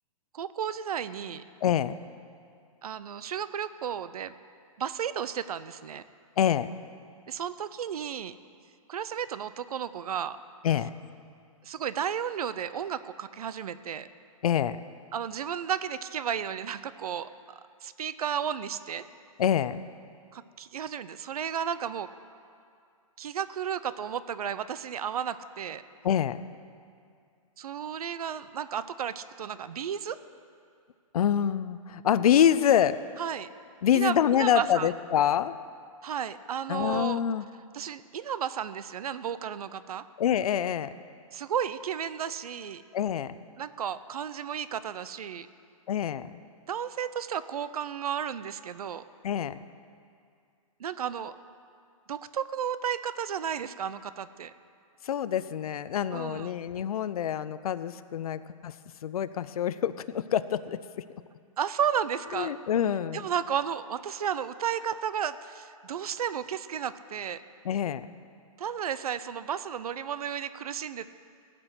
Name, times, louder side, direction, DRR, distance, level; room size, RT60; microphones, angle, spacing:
voice 1, 0.3-1.4 2.8-4.4 4.8-6.0 7.3-8.4 8.9-10.4 11.6-14.1 15.1-17.3 17.8-19.0 20.3-22.1 23.2-25.8 27.6-30.2 33.2-33.5 33.9-34.9 36.0-37.2 37.7-40.0 41.3-42.8 43.6-45.5 46.7-49.0 50.8-51.4 52.1-54.5 56.1-56.5 61.6-62.5 63.1-67.4 68.6-71.1, right 8 dB, 80° right, 14 dB, 0.6 m, -33 dB
voice 2, 1.6-1.9 6.4-6.7 10.6-10.9 14.4-14.8 19.4-19.8 26.0-26.4 31.1-33.0 33.8-35.5 36.7-37.5 40.2-40.9 42.9-43.4 45.9-46.3 49.2-49.6 55.0-58.7 59.0-61.0 62.3-63.2 67.6-68.0, left 9 dB, 80° left, 14 dB, 0.5 m, -26 dB
16.0 x 6.1 x 8.0 m, 2.3 s
hypercardioid pair, 160°, 19 cm